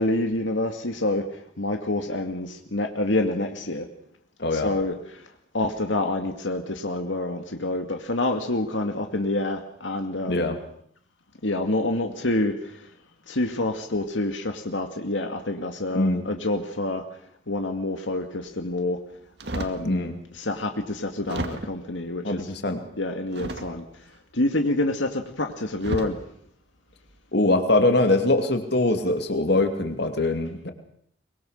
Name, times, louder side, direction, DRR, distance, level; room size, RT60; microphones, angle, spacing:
voice 1, 0.0-3.9 4.5-5.2 5.5-10.5 11.4-12.8 13.3-17.0 17.5-19.0 19.5-20.0 20.3-22.5 23.0-23.8 24.3-26.2, left 2 dB, 85° left, 5 dB, 2.2 m, -27 dB
voice 2, 15.9-16.3 19.8-20.2 22.2-22.8 27.3-30.7, left 2 dB, 60° left, 6 dB, 2.6 m, -22 dB
sound 1, 19.4-19.9 20.5-20.6 21.3-21.9 23.3-24.0 25.2-25.3 25.8-26.2 26.9-27.2, right 1 dB, 60° right, 2.2 m, -33 dB
23.5 x 22.5 x 6.6 m, 0.66 s
head